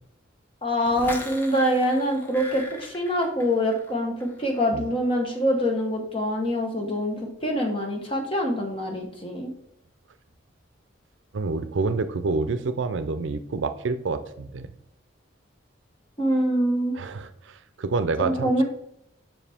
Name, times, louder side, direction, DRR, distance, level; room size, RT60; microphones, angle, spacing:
voice 1, 0.6-9.5 16.2-17.0 18.2-18.6, equal, 25° left, 1 dB, 1.1 m, -25 dB
sound 1, 0.8-3.9 4.2-4.6, left 1 dB, 10° left, 0.7 m, -40 dB
voice 2, 11.3-14.7 16.9-18.6, right 3 dB, 70° right, 12 dB, 0.5 m, -28 dB
7.3 x 5.8 x 3.5 m, 0.73 s
head